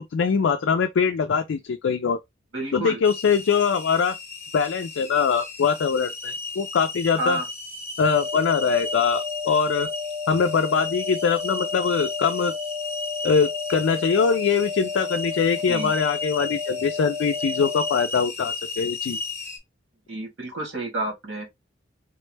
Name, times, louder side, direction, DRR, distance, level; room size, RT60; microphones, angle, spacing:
voice 1, 0.0-2.2 2.7-4.2 4.5-7.4 8.0-9.9 10.3-12.5 13.2-19.2, left 6 dB, 70° left, 0.4 m, -23 dB
voice 2, 2.5-3.0 7.2-7.5 15.7-15.9 20.1-21.5, right 2 dB, 90° right, 1.9 m, -30 dB
sound 1, 3.0-19.6, left 4 dB, 15° left, 0.8 m, -35 dB
sound 2, 8.0-18.0, left 5 dB, 25° right, 0.5 m, -32 dB
3.6 x 2.1 x 3.2 m
head